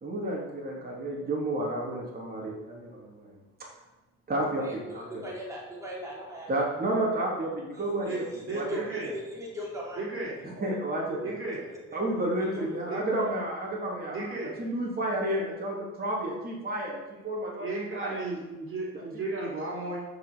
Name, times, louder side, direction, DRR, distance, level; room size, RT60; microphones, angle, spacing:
voice 1, 0.0-3.3 3.6-3.7 4.3-5.2 6.5-8.2 8.5-8.7 10.4-11.2 11.9-14.3 14.6-18.2 18.9-19.0, right 1 dB, 30° right, -4 dB, 3.5 m, -31 dB
voice 2, 4.6-6.8 7.7-10.0 11.2-11.3 12.5-12.9, left 1 dB, 10° right, -5 dB, 4.5 m, -40 dB
voice 3, 8.0-9.1 10.0-10.3 11.2-11.6 12.9-13.0 14.1-14.5 17.6-20.0, right 2 dB, 45° right, -4 dB, 4.2 m, -34 dB
13.0 x 6.0 x 7.0 m, 1.1 s
cardioid pair, 90°, 30 cm